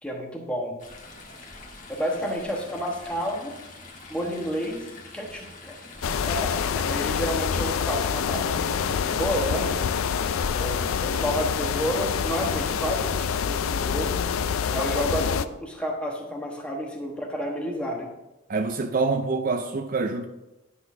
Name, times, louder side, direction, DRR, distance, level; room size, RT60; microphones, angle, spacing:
voice 1, 0.0-0.8 1.9-3.6 4.1-4.9 5.1-5.8 6.1-9.9 10.6-14.1 14.7-18.1, equal, 5° left, 1.2 m, -30 dB
Chatter / Stream, 0.8-13.3, left 2 dB, 35° left, 1.4 m, -44 dB
sound 1, 6.0-15.5, left 7 dB, 85° left, 0.4 m, -26 dB
voice 2, 18.5-20.3, right 3 dB, 40° right, 0.4 m, -26 dB
10.5 x 4.0 x 5.9 m
head